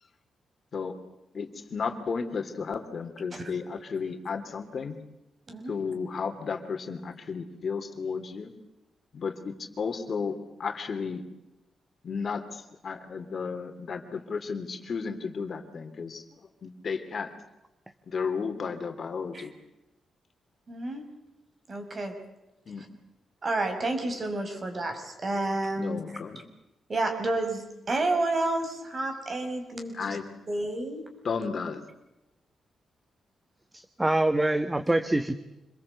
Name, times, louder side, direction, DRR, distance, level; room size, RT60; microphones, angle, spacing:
voice 1, 1.3-5.0 5.7-8.5 9.1-11.3 12.0-16.2 16.6-17.3 18.1-19.5 22.7-22.8 25.8-26.4 29.9-30.2 31.2-31.8, left 5 dB, 50° left, 6 dB, 3.0 m, -33 dB
voice 2, 5.5-5.8 19.3-19.5 20.7-21.0 21.7-22.1 22.8-22.9 23.4-26.0 26.9-30.2 30.5-31.1, right 2 dB, 40° right, 5 dB, 5.8 m, -30 dB
voice 3, 33.7-35.3, right 1 dB, 15° right, 10 dB, 1.3 m, -25 dB
26.5 x 21.5 x 8.3 m, 0.95 s
cardioid pair, 95°, 0 cm